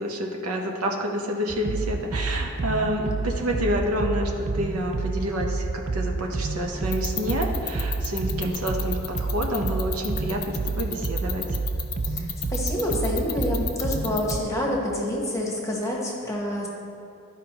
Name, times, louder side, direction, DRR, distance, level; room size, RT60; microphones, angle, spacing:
voice 1, 0.0-11.5, equal, 80° right, 1 dB, 0.9 m, -28 dB
sound 1, 1.5-14.4, right 3 dB, 30° right, 0.3 m, -29 dB
sound 2, 6.9-14.4, left 13 dB, 80° left, 0.6 m, -31 dB
voice 2, 12.1-16.7, left 1 dB, 15° left, -2 dB, 1.1 m, -28 dB
12.5 x 5.0 x 2.9 m, 2.6 s
head